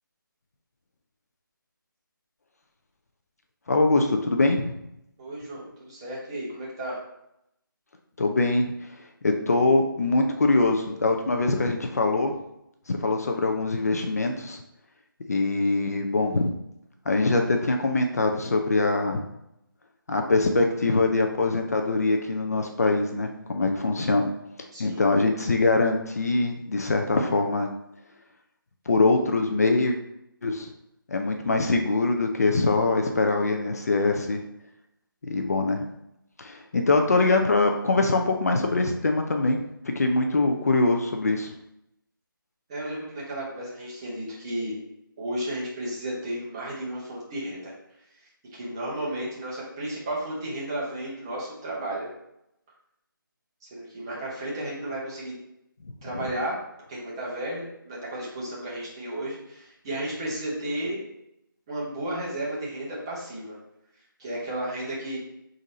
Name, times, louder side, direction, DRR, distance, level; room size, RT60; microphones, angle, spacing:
voice 1, 3.7-4.8 8.2-8.7 9.2-12.4 12.9-14.6 15.3-16.5 17.1-19.2 20.1-24.3 24.6-27.7 28.9-30.0 30.4-30.7 31.1-34.4 35.3-35.8 36.4-39.6 39.8-41.5 55.8-55.9, left 3 dB, 45° left, 3 dB, 0.4 m, -23 dB
voice 2, 5.2-7.0 24.7-25.0 42.7-44.8 45.2-47.7 48.2-52.1 53.7-55.3 56.0-56.5 56.9-61.0 61.7-63.6 64.2-65.2, right 1 dB, 15° right, -6 dB, 0.6 m, -33 dB
3.8 x 2.6 x 4.1 m, 0.82 s
figure-of-eight pair, 165°, 12 cm